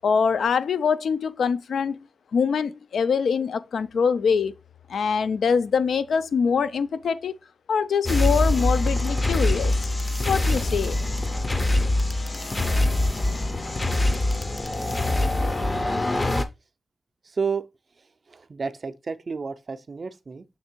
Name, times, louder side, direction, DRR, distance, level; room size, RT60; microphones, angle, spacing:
voice 1, 0.0-2.0 2.3-4.5 4.9-7.3 7.7-9.9 10.2-11.0, left 6 dB, 75° left, 0.4 m, -24 dB
sound 1, 8.1-16.4, left 1 dB, 20° left, 0.5 m, -24 dB
voice 2, 17.3-17.6 18.3-20.4, right 5 dB, 35° right, 0.4 m, -31 dB
6.5 x 3.3 x 4.4 m
wide cardioid pair, 170°, 0 cm